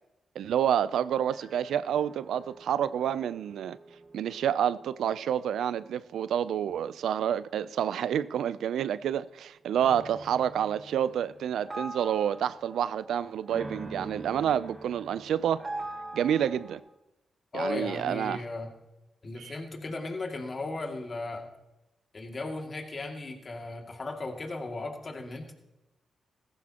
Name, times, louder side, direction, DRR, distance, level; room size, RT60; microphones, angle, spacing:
voice 1, 0.4-3.8 4.1-15.7 16.1-16.8 17.5-18.4 19.4-19.5, right 9 dB, 85° right, 0.4 m, -28 dB
sound 1, 1.2-8.9 9.7-16.8, right 2 dB, 40° right, 3.4 m, -44 dB
voice 2, 17.5-18.7 19.2-21.5 22.1-25.5, left 2 dB, 45° left, 2.3 m, -36 dB
17.0 x 14.5 x 2.9 m
cardioid pair, 65°, 0 cm